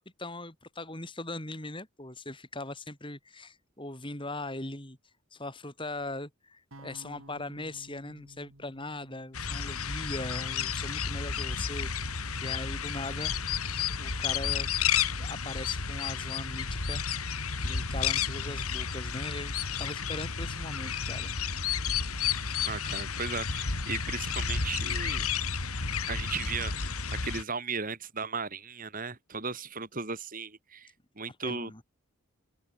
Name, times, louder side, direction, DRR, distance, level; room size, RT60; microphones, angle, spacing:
voice 1, 0.0-5.0 5.3-13.4 13.9-14.7 15.2-17.2 17.5-21.7 31.3-31.8, left 2 dB, 20° left, 5.8 m, -40 dB
sound 1, 6.7-10.8, right 1 dB, 70° right, 4.9 m, -54 dB
sound 2, 9.3-27.4, left 6 dB, 85° left, 2.9 m, -32 dB
voice 2, 22.6-25.3 26.1-31.8, right 5 dB, 40° right, 2.7 m, -36 dB
open air
head